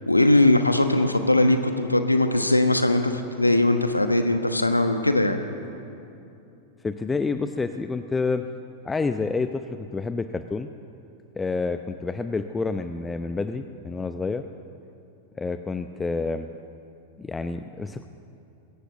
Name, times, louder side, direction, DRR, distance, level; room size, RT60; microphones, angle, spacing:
voice 1, 0.1-5.4, left 2 dB, 85° left, 7 dB, 1.1 m, -20 dB
voice 2, 6.8-8.5 8.8-10.7 11.4-14.5 15.4-16.5 17.2-18.1, left 4 dB, 15° left, 9 dB, 0.7 m, -28 dB
21.5 x 16.0 x 8.1 m, 2.7 s
figure-of-eight pair, 90°, 0 cm